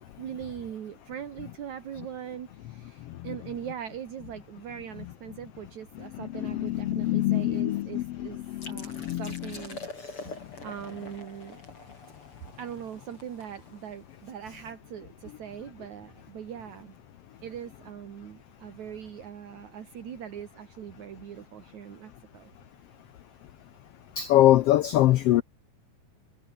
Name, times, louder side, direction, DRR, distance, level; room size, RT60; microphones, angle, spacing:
voice 1, 0.2-9.8 10.6-11.6 12.6-17.0 17.4-22.5, right 9 dB, 65° right, 3.2 m, -41 dB
voice 2, 6.4-9.3 24.2-25.4, left 14 dB, 85° left, 1.3 m, -23 dB
sound 1, 8.6-14.1, left 2 dB, 40° left, 8.5 m, -45 dB
omnidirectional pair, 3.6 m